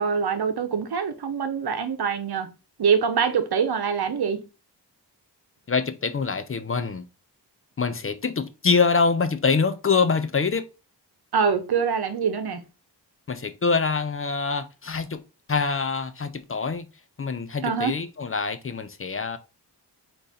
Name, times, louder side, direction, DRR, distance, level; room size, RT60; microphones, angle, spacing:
voice 1, 0.0-2.5 2.8-4.4 11.3-12.6 17.6-17.9, right 6 dB, 65° right, 0.9 m, -24 dB
voice 2, 5.7-7.0 7.8-10.7 13.3-15.2 15.5-16.9 17.2-19.4, left 5 dB, 35° left, 0.5 m, -25 dB
4.8 x 2.7 x 4.1 m
cardioid pair, 75°, 41 cm